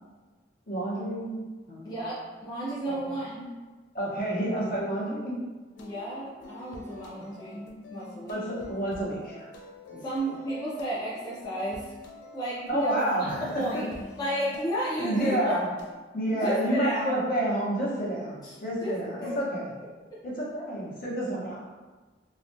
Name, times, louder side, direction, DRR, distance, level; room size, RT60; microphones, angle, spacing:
voice 1, 0.7-1.4 1.7-2.0 2.8-3.2 3.9-5.3 8.3-9.5 9.9-10.0 12.7-13.8 15.0-15.7 16.1-19.7 20.2-21.6, right 1 dB, 55° left, -6 dB, 0.8 m, -29 dB
voice 2, 1.8-3.5 5.8-8.4 10.0-11.9 12.3-13.0 13.5-13.9 14.2-15.6 16.3-17.2 18.4-18.5 18.8-19.3, right 1 dB, 20° left, -9 dB, 0.4 m, -32 dB
sound 1, 5.8-16.0, left 3 dB, 90° left, 0.4 m, -46 dB
2.4 x 2.1 x 2.6 m, 1.3 s
head